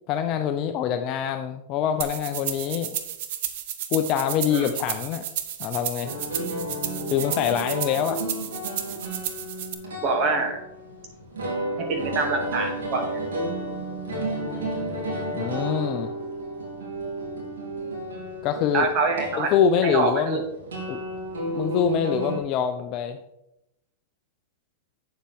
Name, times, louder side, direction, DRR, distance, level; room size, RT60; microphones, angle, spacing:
voice 1, 0.1-2.9 3.9-5.2 5.6-6.1 7.1-8.2 15.3-16.1 18.4-18.9 19.4-20.4 20.9-21.0 21.5-23.2, left 8 dB, 45° left, 7 dB, 0.6 m, -25 dB
sound 1, 2.0-9.7, right 11 dB, 60° right, 0.9 m, -33 dB
sound 2, 6.0-22.4, right 1 dB, 85° right, 3.0 m, -32 dB
voice 2, 10.0-10.6 11.8-13.2 18.7-19.5 19.8-20.4, right 4 dB, 45° right, 2 dB, 2.4 m, -25 dB
8.7 x 7.2 x 3.6 m, 0.86 s
hypercardioid pair, 115°, 0 cm